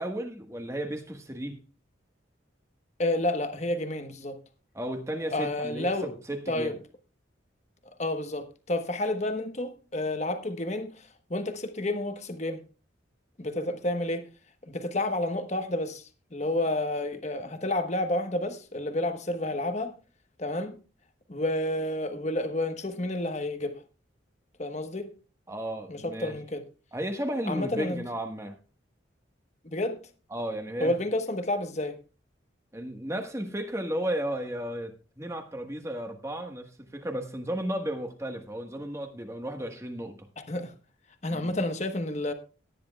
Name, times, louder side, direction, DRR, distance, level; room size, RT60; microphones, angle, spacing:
voice 1, 0.0-1.6 4.7-6.8 25.5-26.3 26.9-28.5 30.3-30.9 32.7-40.2 41.3-41.6, right 1 dB, 15° right, 1.4 m, -34 dB
voice 2, 3.0-4.4 5.3-6.1 6.5-6.7 8.0-12.6 13.4-14.2 14.6-16.0 16.3-19.9 20.4-20.8 21.3-23.8 24.6-25.1 25.9-26.6 27.5-28.0 29.6-30.0 30.8-32.0 40.5-40.7 41.2-42.3, left 1 dB, 35° left, 1.1 m, -30 dB
18.0 x 10.5 x 2.3 m
head